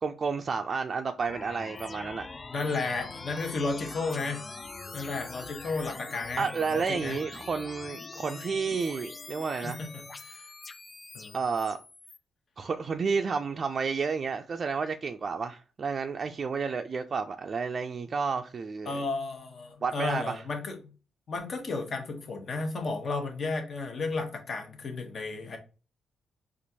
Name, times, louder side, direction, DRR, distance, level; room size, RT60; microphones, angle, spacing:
voice 1, 0.0-2.3 6.4-9.8 11.3-11.8 12.6-19.0 19.8-20.4, right 5 dB, 50° right, 0.3 m, -31 dB
sound 1, 1.3-12.2, left 3 dB, 40° left, 0.4 m, -43 dB
voice 2, 2.5-4.4 4.9-7.2 9.6-10.5 11.1-11.4 18.8-20.9 21.3-25.6, left 3 dB, 55° left, 1.0 m, -33 dB
4.3 x 2.5 x 2.7 m
supercardioid pair, 55°, 0 cm